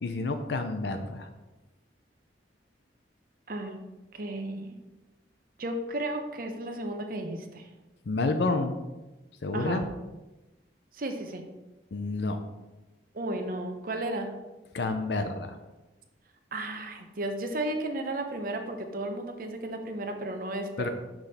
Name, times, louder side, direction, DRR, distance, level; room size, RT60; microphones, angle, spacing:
voice 1, 0.0-1.3 8.1-8.7 9.4-9.8 11.9-12.4 14.7-15.5 20.8-20.9, left 3 dB, 70° left, 7 dB, 0.5 m, -29 dB
voice 2, 3.5-3.8 4.1-4.7 5.6-7.7 9.5-9.8 10.9-11.4 13.1-14.3 16.5-20.9, right 1 dB, 50° right, 5 dB, 0.8 m, -34 dB
6.0 x 5.1 x 4.2 m, 1.1 s
head